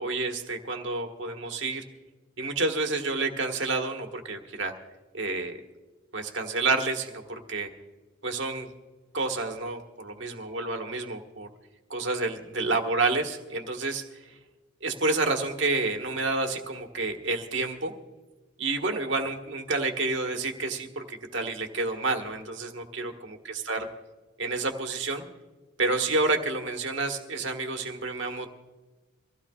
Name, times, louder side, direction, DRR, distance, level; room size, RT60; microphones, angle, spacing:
voice 1, 0.0-1.8 2.4-4.7 5.1-5.6 6.1-7.7 8.2-8.7 9.1-11.5 11.9-14.0 14.8-17.9 18.6-23.9 24.4-25.2 25.8-28.5, right 3 dB, 65° right, 3 dB, 1.5 m, -29 dB
24.5 x 15.5 x 2.4 m, 1.3 s
head